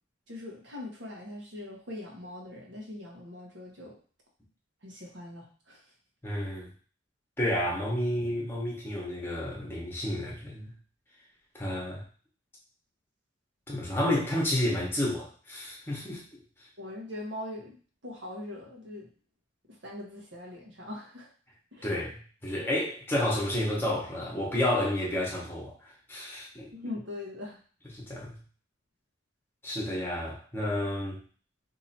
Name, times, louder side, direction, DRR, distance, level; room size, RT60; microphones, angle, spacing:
voice 1, 0.3-4.0 4.8-5.9 16.8-17.8 18.0-19.1 19.7-21.3 21.7-21.9 26.7-27.6, left 1 dB, 75° right, -1 dB, 1.2 m, -41 dB
voice 2, 6.2-6.7 7.4-10.7 11.5-12.0 13.7-16.4 21.8-26.7 27.9-28.4 29.6-31.2, left 1 dB, 10° left, -3 dB, 1.1 m, -31 dB
2.9 x 2.8 x 4.2 m, 0.41 s
head